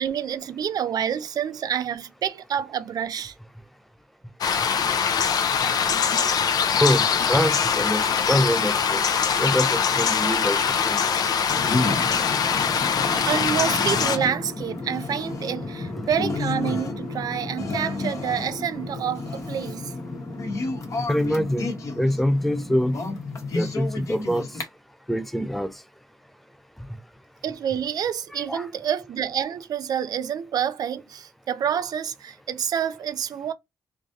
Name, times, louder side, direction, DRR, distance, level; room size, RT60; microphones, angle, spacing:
voice 1, 0.0-3.3 13.3-19.9 27.4-33.5, right 8 dB, 60° right, 0.5 m, -28 dB
sound 1, 4.4-14.2, left 7 dB, 60° left, 0.6 m, -23 dB
voice 2, 6.8-9.1 9.4-10.6 10.9-11.0 16.0-16.1 21.1-23.0 23.5-24.5 25.1-25.7 28.5-28.7, equal, ahead, 0.4 m, -24 dB
sound 2, 11.5-24.6, left 3 dB, 45° left, 1.2 m, -31 dB
3.2 x 2.6 x 3.7 m
wide cardioid pair, 140°, 7 cm